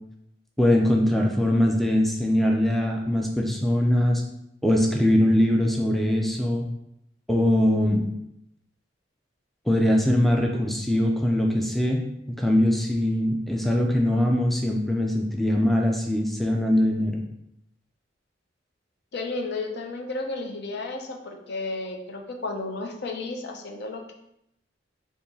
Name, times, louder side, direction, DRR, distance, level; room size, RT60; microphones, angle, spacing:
voice 1, 0.6-4.2 4.6-6.7 7.3-8.0 9.7-12.0 12.3-17.2, left 1 dB, ahead, 1 dB, 0.3 m, -22 dB
voice 2, 19.1-24.1, left 3 dB, 60° left, 3 dB, 0.5 m, -33 dB
4.6 x 2.7 x 2.7 m, 0.80 s
head